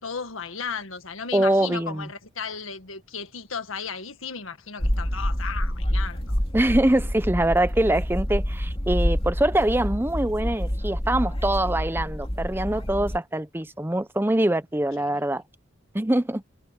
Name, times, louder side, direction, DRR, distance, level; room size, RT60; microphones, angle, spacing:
voice 1, 0.0-6.4 15.0-15.1, left 6 dB, 75° left, 1.7 m, -35 dB
voice 2, 1.3-2.1 6.5-15.4 15.9-16.4, right 1 dB, 10° right, 0.7 m, -23 dB
sound 1, 4.8-13.2, equal, 25° left, 2.7 m, -27 dB
head